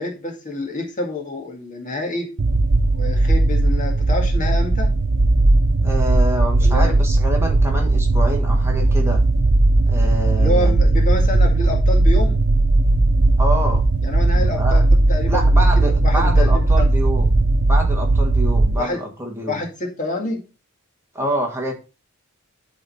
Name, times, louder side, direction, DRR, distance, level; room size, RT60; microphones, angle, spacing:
voice 1, 0.0-2.3 2.9-4.9 6.6-6.9 10.4-12.4 14.0-14.8 15.1-16.9 18.8-19.0 19.5-20.4, left 2 dB, 35° left, 1 dB, 2.1 m, -27 dB
sound 1, 2.4-18.8, right 2 dB, 85° right, 0.7 m, -17 dB
voice 2, 5.8-9.2 9.8-11.0 13.4-13.8 14.4-14.8 15.3-17.3 17.7-19.6 21.1-21.7, right 1 dB, 10° right, 1 dB, 1.7 m, -27 dB
12.0 x 4.4 x 4.2 m, 0.31 s
head